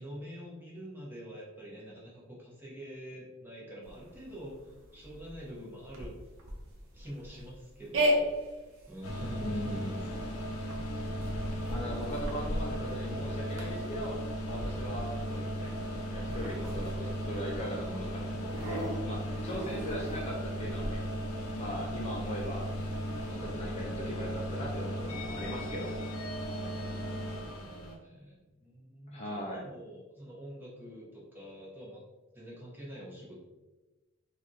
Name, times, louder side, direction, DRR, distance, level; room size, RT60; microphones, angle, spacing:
voice 1, 0.0-6.1 6.9-8.3 8.9-10.4 19.2-19.7 26.4-32.0 32.3-33.4, equal, 10° right, -5 dB, 0.8 m, -47 dB
sound 1, 3.8-23.3, equal, 60° right, 0.7 m, -38 dB
sound 2, 9.0-28.0, equal, 80° left, 0.6 m, -36 dB
voice 2, 9.4-10.1 11.7-14.2 14.4-15.7 16.0-21.0 21.5-22.7 23.2-25.9 29.1-29.7, equal, 30° left, -2 dB, 0.4 m, -39 dB
3.3 x 2.4 x 2.6 m, 1.1 s
head